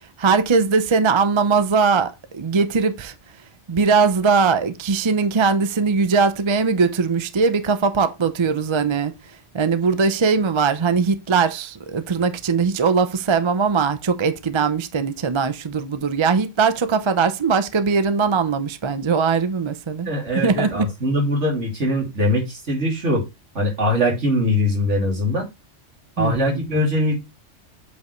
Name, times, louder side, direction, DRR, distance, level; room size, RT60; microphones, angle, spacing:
voice 1, 0.2-3.1 3.7-9.1 9.5-20.9 26.2-26.6, right 5 dB, 35° right, 0.5 m, -20 dB
voice 2, 20.0-23.2 23.5-25.5 26.2-27.2, left 1 dB, 65° right, 3.0 m, -21 dB
8.0 x 5.2 x 3.1 m
omnidirectional pair, 1.3 m